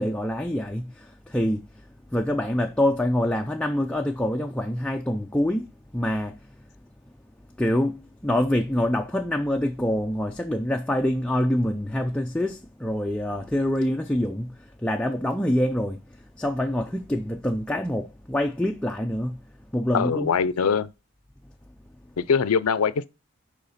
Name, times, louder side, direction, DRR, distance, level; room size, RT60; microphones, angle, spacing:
voice 1, 0.0-1.6 2.1-5.7 5.9-6.4 7.6-16.0 16.4-19.4 19.7-20.3, left 1 dB, 5° left, 0.4 m, -25 dB
voice 2, 19.9-20.9 22.2-23.1, left 6 dB, 80° left, 0.5 m, -22 dB
6.7 x 4.9 x 4.1 m
head